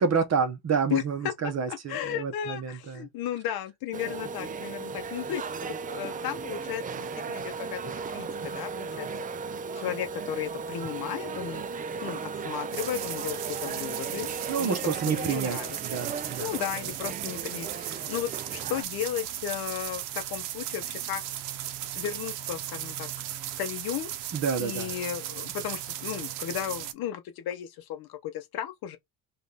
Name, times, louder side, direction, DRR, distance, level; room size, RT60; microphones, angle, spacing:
voice 1, 0.0-3.1 14.5-16.5 24.3-24.9, right 6 dB, 40° right, 1.0 m, -29 dB
voice 2, 1.4-9.1 9.7-11.6 12.0-14.3 14.6-16.0 16.4-20.0 20.3-21.2 21.9-23.1 23.6-24.1 24.6-29.0, left 11 dB, 60° left, 0.7 m, -35 dB
sound 1, 3.9-18.8, right 5 dB, 20° right, 0.3 m, -36 dB
sound 2, 12.7-26.9, right 12 dB, 75° right, 0.8 m, -36 dB
4.0 x 2.5 x 3.4 m
supercardioid pair, 95°, 42 cm